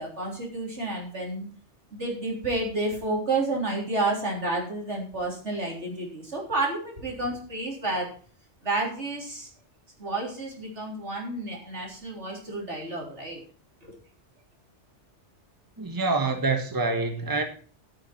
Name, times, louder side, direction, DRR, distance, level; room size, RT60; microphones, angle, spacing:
voice 1, 0.0-1.5 1.9-8.1 8.6-9.5 10.0-13.4 13.8-13.9, right 2 dB, 75° right, 4.0 m, -30 dB
voice 2, 15.8-17.4, right 3 dB, 20° right, 1.4 m, -26 dB
12.5 x 8.7 x 4.5 m
omnidirectional pair, 1.2 m